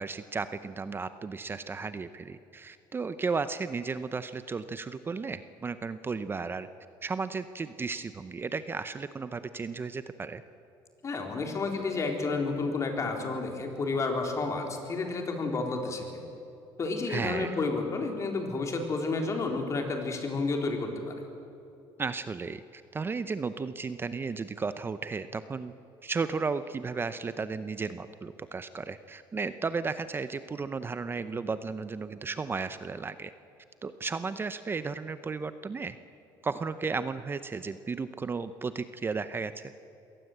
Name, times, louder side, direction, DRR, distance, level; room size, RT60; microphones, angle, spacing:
voice 1, 0.0-6.7 7.0-10.4 17.1-17.6 22.0-25.7 26.0-33.3 33.8-36.0 36.4-39.7, right 4 dB, 25° right, 12 dB, 0.7 m, -34 dB
voice 2, 11.0-16.2 16.8-21.1, left 3 dB, 35° left, 3 dB, 3.8 m, -31 dB
22.5 x 18.0 x 7.9 m, 2.8 s
cardioid pair, 115°, 9 cm